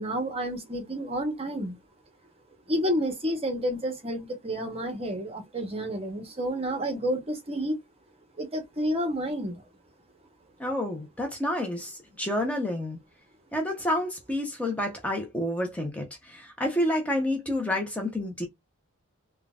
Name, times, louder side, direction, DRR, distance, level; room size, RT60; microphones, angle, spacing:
voice 1, 0.0-1.8 2.7-7.8 8.4-9.6, equal, 25° right, 0.9 m, -30 dB
voice 2, 10.6-13.0 13.5-18.5, left 1 dB, 5° left, 0.6 m, -29 dB
3.7 x 2.2 x 2.3 m
head